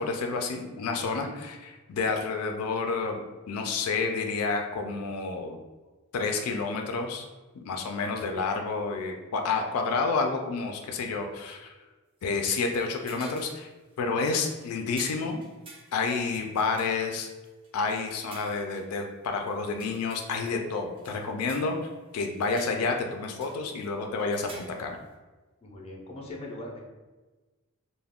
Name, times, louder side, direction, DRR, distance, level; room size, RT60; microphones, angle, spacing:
voice 1, 0.0-1.6 1.9-5.6 6.1-7.2 7.6-11.7 12.2-13.7 14.0-15.4 15.9-17.3 17.7-21.8 22.1-25.0, left 4 dB, 85° left, 3 dB, 0.3 m, -29 dB
voice 2, 0.9-1.3 25.6-26.8, left 1 dB, 30° left, -1 dB, 0.5 m, -41 dB
sound 1, 12.2-13.6 13.9-14.0 14.3-18.9 19.5-20.5 21.0-21.9 22.2-23.1 23.4-23.9 24.2-25.0, right 2 dB, 25° right, 0.4 m, -50 dB
2.3 x 2.1 x 3.4 m, 1.2 s
head